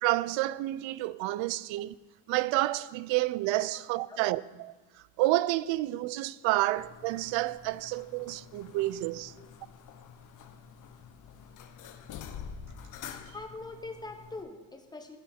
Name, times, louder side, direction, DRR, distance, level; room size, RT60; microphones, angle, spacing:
voice 1, 0.0-2.0 2.3-4.7 5.2-9.3, right 17 dB, 85° right, 0.5 m, -29 dB
voice 2, 3.7-4.2 9.4-9.5 13.3-15.2, left 3 dB, 10° left, 0.8 m, -43 dB
sound 1, 6.8-14.4, left 7 dB, 45° left, 0.7 m, -47 dB
14.5 x 7.2 x 4.3 m
cardioid pair, 165°, 44 cm